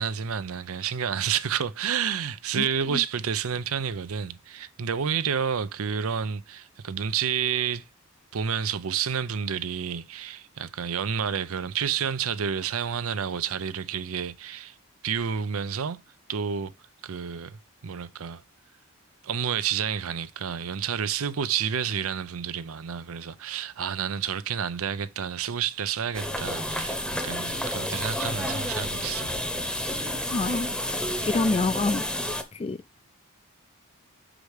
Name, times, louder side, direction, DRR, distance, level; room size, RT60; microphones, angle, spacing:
voice 1, 0.0-7.8 8.3-14.8 15.0-16.0 16.3-16.7 17.0-18.4 19.2-29.4, right 7 dB, 70° right, 0.5 m, -30 dB
voice 2, 2.6-3.0 30.3-30.7 31.2-32.0 32.5-32.8, left 3 dB, 25° left, 0.3 m, -27 dB
sound 1, 26.1-32.4, left 1 dB, 5° left, 0.9 m, -30 dB
6.4 x 5.0 x 4.7 m
head